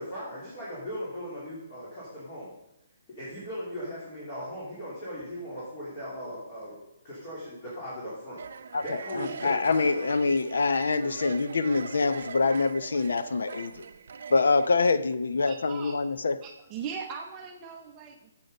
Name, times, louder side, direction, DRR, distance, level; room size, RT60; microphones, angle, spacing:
voice 1, 0.0-2.5 3.1-8.4 8.8-9.9, equal, 25° left, -8 dB, 3.2 m, -38 dB
sound 1, 8.4-14.7, right 6 dB, 60° right, 0.6 m, -42 dB
voice 2, 8.7-13.8 14.3-16.4, left 4 dB, 85° left, 12 dB, 0.7 m, -25 dB
voice 3, 15.5-16.0 16.4-18.3, right 6 dB, 20° right, 2 dB, 0.7 m, -39 dB
9.2 x 7.5 x 5.4 m, 0.88 s
hypercardioid pair, 165°, 0 cm